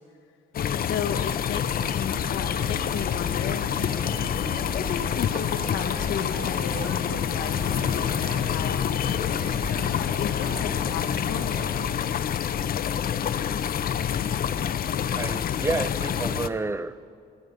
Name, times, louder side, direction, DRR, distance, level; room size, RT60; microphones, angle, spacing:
sound 1, 0.5-16.5, left 9 dB, 50° left, 0.5 m, -27 dB
voice 1, 0.9-3.7 4.7-9.5 10.2-11.5, left 8 dB, 80° left, 6 dB, 1.0 m, -34 dB
sound 2, 1.7-12.0, right 4 dB, 70° right, 1.6 m, -40 dB
voice 2, 15.2-17.0, right 3 dB, 15° right, 15 dB, 0.4 m, -30 dB
22.5 x 9.6 x 5.2 m, 2.4 s
cardioid pair, 90°, 20 cm